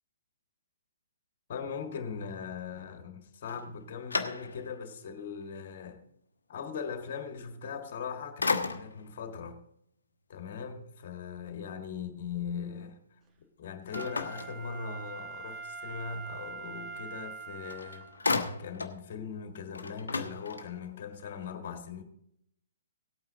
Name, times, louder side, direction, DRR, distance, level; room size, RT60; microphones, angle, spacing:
voice 1, 1.5-6.0 6.5-8.4 8.8-9.6 10.3-13.1 13.6-18.1 18.6-22.0, left 6 dB, 45° left, 1.8 m, -40 dB
sound 1, 3.5-4.9 5.4-5.5 7.8-8.1 8.4-9.2 13.9-15.2 17.3-17.4 17.7-19.0 19.4-19.5 19.7-21.0, left 4 dB, 70° left, 1.1 m, -34 dB
Wind instrument woodwind instrument, 13.9-18.2 18.7-18.8, right 5 dB, 20° right, 1.1 m, -43 dB
17.5 x 8.9 x 3.9 m
figure-of-eight pair, 125°, 0 cm